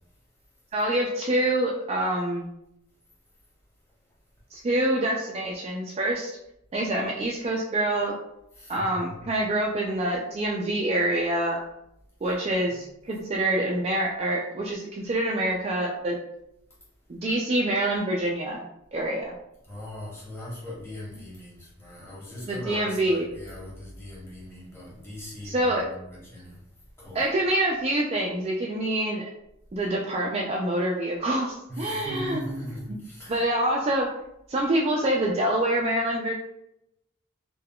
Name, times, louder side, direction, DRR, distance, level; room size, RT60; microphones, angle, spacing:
voice 1, 0.7-2.5 4.5-6.3 6.7-8.2 8.7-11.6 12.2-16.2 17.1-18.6 18.9-19.3 22.4-23.3 25.4-25.8 27.1-29.3 29.7-32.4 32.9-33.0 33.3-34.1 34.5-36.3, right 1 dB, 30° right, -2 dB, 0.3 m, -26 dB
voice 2, 19.7-26.6 27.0-27.2 31.7-33.4, equal, 15° left, -6 dB, 1.0 m, -39 dB
3.5 x 2.2 x 2.2 m, 0.81 s
head